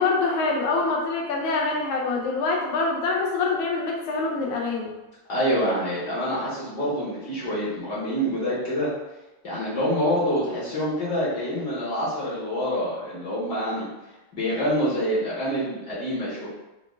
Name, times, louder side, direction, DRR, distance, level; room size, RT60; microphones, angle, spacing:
voice 1, 0.0-4.9, left 3 dB, 85° left, 0 dB, 1.4 m, -25 dB
voice 2, 5.3-8.9 9.4-13.9 14.3-16.5, equal, 60° left, -8 dB, 1.5 m, -26 dB
5.0 x 2.2 x 2.4 m, 1.0 s
omnidirectional pair, 2.2 m